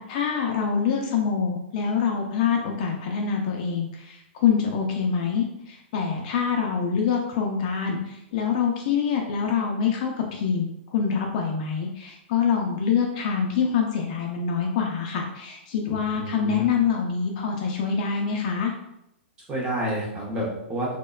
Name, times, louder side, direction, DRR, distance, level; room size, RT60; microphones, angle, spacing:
voice 1, 0.0-18.7, left 6 dB, 40° left, 1 dB, 0.3 m, -25 dB
voice 2, 15.9-16.7 19.5-21.0, right 1 dB, 15° right, -4 dB, 0.6 m, -29 dB
2.8 x 2.1 x 2.3 m, 0.82 s
hypercardioid pair, 160°, 6 cm